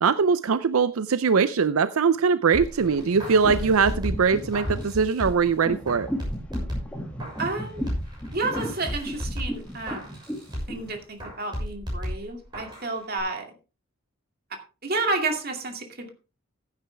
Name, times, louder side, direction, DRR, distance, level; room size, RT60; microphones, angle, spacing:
voice 1, 0.0-6.1, right 5 dB, 80° right, 14 dB, 0.5 m, -22 dB
sound 1, 2.5-11.0, equal, 5° left, 2.2 m, -34 dB
sound 2, 2.5-5.5 5.9-7.6 7.9-10.9 11.2-12.9 13.2-13.3, equal, 20° right, 6.3 m, -35 dB
voice 2, 7.4-7.9 8.3-10.2 10.7-13.5 14.8-16.1, right 3 dB, 45° right, 4 dB, 2.4 m, -30 dB
15.0 x 9.2 x 3.4 m, 0.32 s
head